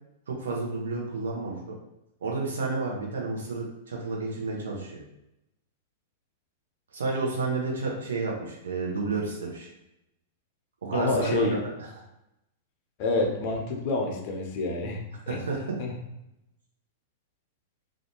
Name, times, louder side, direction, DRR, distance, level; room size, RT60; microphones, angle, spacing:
voice 1, 0.3-1.8 2.2-5.0 6.9-9.7 10.8-11.7 15.3-15.6, right 3 dB, 70° right, -2 dB, 0.6 m, -30 dB
voice 2, 10.9-11.6 13.0-15.0 15.3-15.4 15.8-15.9, left 3 dB, 45° left, 1 dB, 0.6 m, -28 dB
2.5 x 2.2 x 2.9 m, 0.88 s
figure-of-eight pair, 100°, 0 cm